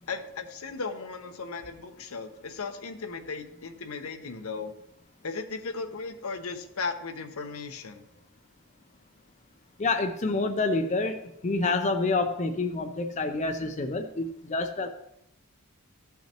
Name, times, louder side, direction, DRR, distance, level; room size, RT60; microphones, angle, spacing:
voice 1, 0.1-4.8 5.2-8.1, left 4 dB, 75° left, 7 dB, 0.8 m, -36 dB
voice 2, 9.8-14.9, left 3 dB, 35° left, 6 dB, 0.5 m, -28 dB
14.5 x 5.7 x 2.9 m, 0.82 s
head